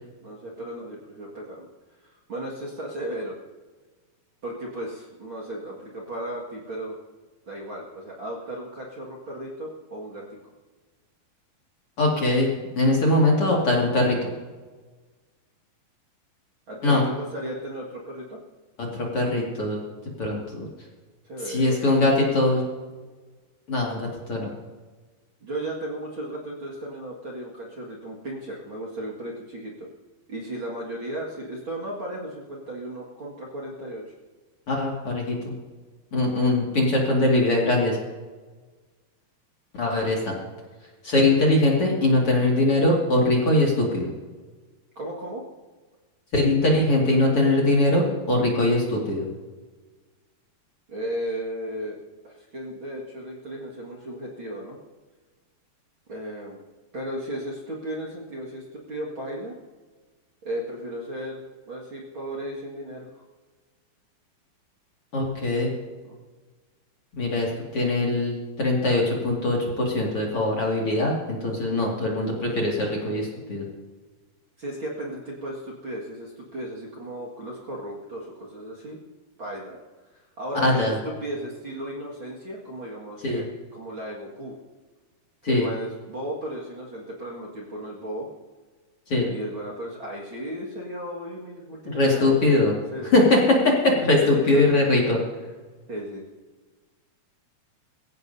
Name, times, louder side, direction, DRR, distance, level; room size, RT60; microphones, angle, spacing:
voice 1, 0.2-1.7 2.0-3.3 4.4-7.0 7.5-10.5 16.7-18.4 21.2-21.8 25.4-29.9 30.3-34.0 45.0-45.4 50.9-52.0 52.2-54.8 56.1-56.6 56.9-59.5 60.4-63.2 66.0-66.2 74.6-79.0 79.4-79.8 80.4-84.6 85.4-88.3 89.2-92.4 92.9-93.3 94.2-94.9 95.9-96.3, right 1 dB, 40° right, -4 dB, 2.1 m, -35 dB
voice 2, 12.0-12.5 12.8-14.3 16.8-17.0 18.8-19.8 20.2-20.7 21.4-22.6 23.7-24.5 34.7-35.5 36.1-38.0 39.7-40.3 41.0-44.1 46.3-49.2 65.1-65.7 67.2-73.6 80.5-80.9 83.2-83.4 85.4-85.7 89.1-89.3 91.9-92.8 93.0-95.2, left 2 dB, 40° left, -3 dB, 2.7 m, -21 dB
22.0 x 16.5 x 2.8 m, 1.3 s
omnidirectional pair, 4.5 m